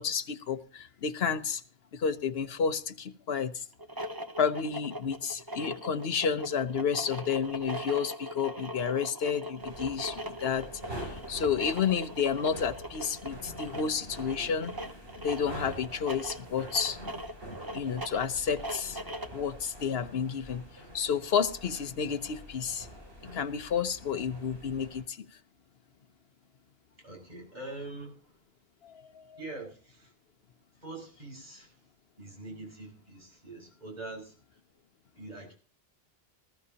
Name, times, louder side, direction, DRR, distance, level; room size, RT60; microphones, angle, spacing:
voice 1, 0.0-1.6 1.9-3.6 4.4-14.7 15.2-17.0 17.7-19.0 19.3-20.6 20.9-22.9 23.3-25.3 28.8-29.4, left 6 dB, 75° left, 10 dB, 1.1 m, -31 dB
sound 1, 3.7-19.4, equal, 20° right, 1.0 m, -40 dB
sound 2, 9.6-25.0, equal, 75° right, 6.8 m, -46 dB
voice 2, 27.0-28.4 29.3-30.1 30.8-31.8 32.2-34.3 35.1-35.5, right 2 dB, 45° right, -1 dB, 6.5 m, -44 dB
20.0 x 14.5 x 2.9 m, 0.38 s
omnidirectional pair, 1.0 m